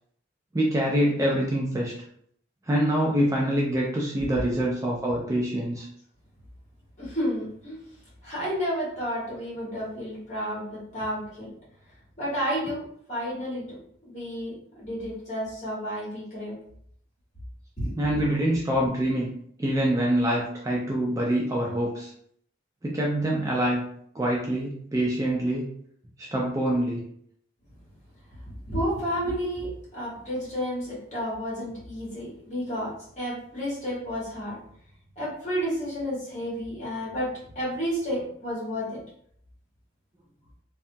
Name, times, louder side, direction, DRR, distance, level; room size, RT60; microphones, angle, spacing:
voice 1, 0.5-1.9 2.6-5.9 18.0-19.3 19.6-22.1 22.8-23.8 24.1-25.6 26.2-27.0, right 1 dB, 15° right, -3 dB, 0.3 m, -25 dB
voice 2, 7.0-7.8 8.2-11.5 12.2-12.8 13.1-13.8 14.0-16.5 17.8-18.0 28.6-34.6 35.2-39.0, equal, 35° left, -7 dB, 1.4 m, -31 dB
2.6 x 2.2 x 2.7 m, 0.65 s
head